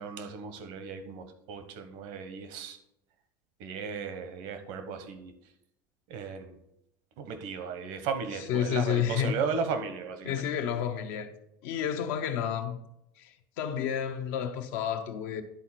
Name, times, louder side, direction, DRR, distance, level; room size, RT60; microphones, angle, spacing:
voice 1, 0.0-2.8 3.6-5.3 6.1-6.6 7.2-10.4, right 5 dB, 70° right, 1.1 m, -35 dB
voice 2, 8.5-9.3 10.2-11.3 11.6-12.8 13.2-15.4, left 9 dB, 70° left, 0.9 m, -30 dB
10.5 x 4.1 x 4.3 m
supercardioid pair, 95°, 11 cm